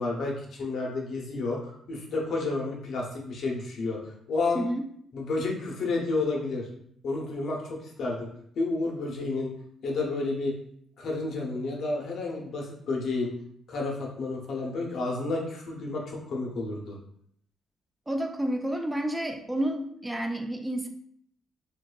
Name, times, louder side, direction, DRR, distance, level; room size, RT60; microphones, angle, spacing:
voice 1, 0.0-4.6 5.1-6.7 7.0-8.3 8.6-9.5 9.8-10.5 11.0-13.3 13.7-17.0, left 3 dB, 65° left, -1 dB, 0.6 m, -31 dB
voice 2, 4.5-4.8 18.1-20.9, right 1 dB, 10° right, 4 dB, 0.3 m, -30 dB
2.6 x 2.2 x 2.2 m, 0.68 s
cardioid pair, 90°, 0 cm